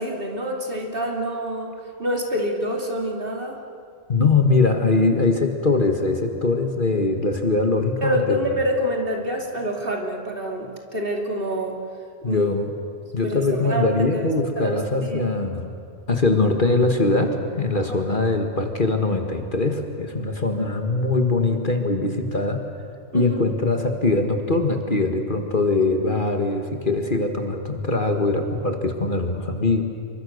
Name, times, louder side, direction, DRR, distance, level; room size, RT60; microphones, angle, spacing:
voice 1, 0.0-3.6 8.0-11.8 12.2-12.5 13.1-14.3 14.6-15.3 17.7-18.0 23.1-23.4, equal, 45° right, 1 dB, 3.0 m, -27 dB
voice 2, 4.1-8.4 12.2-12.7 13.1-15.7 16.1-22.7 23.1-29.8, left 3 dB, 40° left, 4 dB, 1.9 m, -22 dB
28.0 x 24.0 x 6.6 m, 2.3 s
omnidirectional pair, 1.3 m